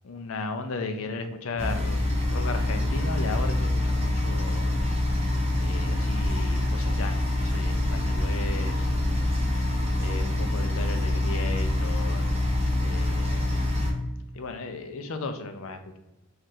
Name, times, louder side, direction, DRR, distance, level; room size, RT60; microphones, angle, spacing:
voice 1, 0.0-4.7 5.6-8.9 10.0-12.3 12.8-13.5 14.3-16.0, left 3 dB, 70° left, 7 dB, 0.5 m, -35 dB
sound 1, 1.6-13.9, left 1 dB, 30° right, 0.6 m, -25 dB
3.1 x 2.5 x 4.2 m, 0.99 s
head